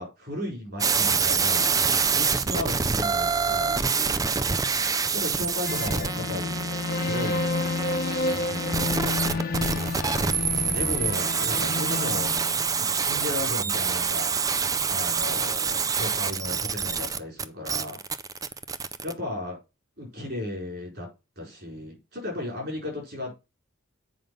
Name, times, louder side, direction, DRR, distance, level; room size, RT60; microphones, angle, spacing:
voice 1, 0.0-1.8 2.1-4.2 5.1-6.6 6.9-7.5 8.3-9.6 10.7-12.3 12.8-14.5 14.9-18.0 19.0-19.6 20.0-21.1 21.4-23.4, left 2 dB, 50° right, 0 dB, 4.6 m, -35 dB
sound 1, 0.8-19.1, right 5 dB, 15° right, 0.4 m, -26 dB
sound 2, 5.7-13.2, left 3 dB, 45° left, 0.8 m, -30 dB
7.7 x 5.3 x 5.4 m, 0.27 s
head